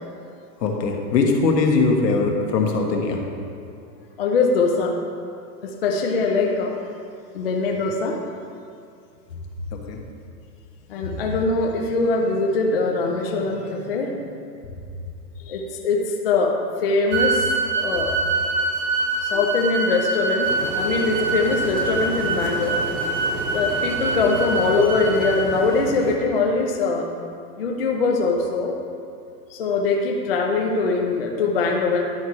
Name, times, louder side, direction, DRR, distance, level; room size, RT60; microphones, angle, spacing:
voice 1, 0.6-3.2 9.7-10.0, left 3 dB, 80° left, 1 dB, 1.4 m, -21 dB
voice 2, 4.2-5.0 5.6-6.8 7.3-8.2 10.9-14.2 15.4-17.5 17.8-18.2 19.2-22.8 23.5-27.1 27.6-28.7 29.5-32.0, left 3 dB, 40° left, 1 dB, 0.4 m, -22 dB
sound 1, 17.1-25.4, right 2 dB, 15° right, 0.6 m, -25 dB
sound 2, 20.4-26.2, right 3 dB, 75° right, 1.3 m, -32 dB
10.5 x 4.3 x 4.7 m, 2.4 s
supercardioid pair, 175°, 49 cm